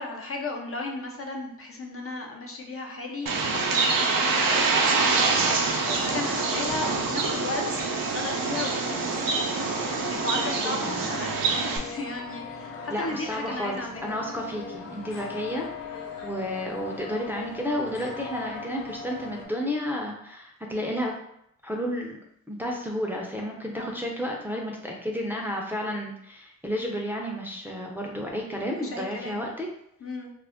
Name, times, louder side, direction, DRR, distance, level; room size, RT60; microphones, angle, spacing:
voice 1, 0.0-7.6 7.9-9.3 9.6-14.1 23.8-24.0 28.7-29.5 30.0-30.3, left 2 dB, 40° left, 1 dB, 0.6 m, -35 dB
Bird, 3.3-11.8, right 4 dB, 70° right, 0.6 m, -25 dB
sound 1, 4.3-19.5, left 4 dB, 80° left, 0.8 m, -39 dB
voice 2, 10.4-10.9 12.9-21.1 21.6-22.2 22.5-29.7, equal, 5° right, -2 dB, 0.5 m, -32 dB
2.4 x 2.1 x 3.4 m, 0.74 s
cardioid pair, 55°, 35 cm